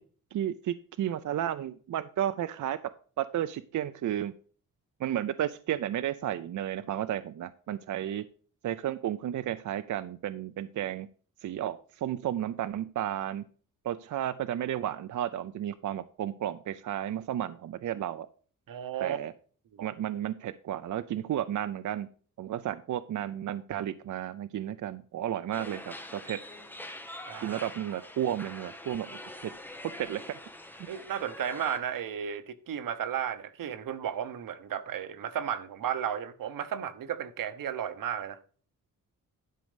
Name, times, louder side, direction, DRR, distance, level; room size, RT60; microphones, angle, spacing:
voice 1, 0.3-2.8 3.2-4.3 5.0-8.2 8.6-11.1 11.4-13.4 13.9-18.3 19.0-19.3 19.8-22.1 22.4-26.4 27.4-29.5 30.0-30.2, right 11 dB, 65° right, 0.5 m, -33 dB
voice 2, 18.7-19.2 19.7-19.9 27.3-27.6 30.9-38.4, right 9 dB, 90° right, 1.0 m, -34 dB
sound 1, 25.5-31.8, left 1 dB, 5° left, 1.2 m, -44 dB
11.0 x 5.3 x 5.0 m
wide cardioid pair, 140°, 32 cm